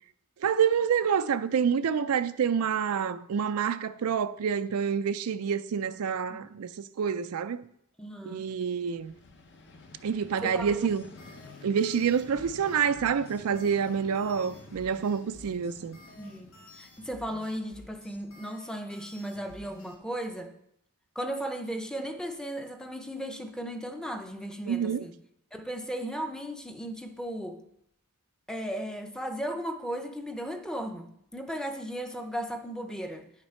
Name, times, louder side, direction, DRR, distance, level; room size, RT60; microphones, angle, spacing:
voice 1, 0.4-7.6 8.3-9.1 10.0-11.0 11.6-16.0 24.7-25.0, right 7 dB, 90° right, 0.4 m, -27 dB
voice 2, 1.7-2.1 6.3-6.5 8.0-8.5 10.4-10.9 16.2-20.5 21.2-25.1 25.5-27.6 28.5-33.3, equal, 5° left, 0.6 m, -36 dB
Vehicle, 8.8-17.7, left 3 dB, 55° left, 0.8 m, -51 dB
sound 1, 10.6-19.9, left 1 dB, 80° left, 2.2 m, -52 dB
9.6 x 5.9 x 4.4 m
head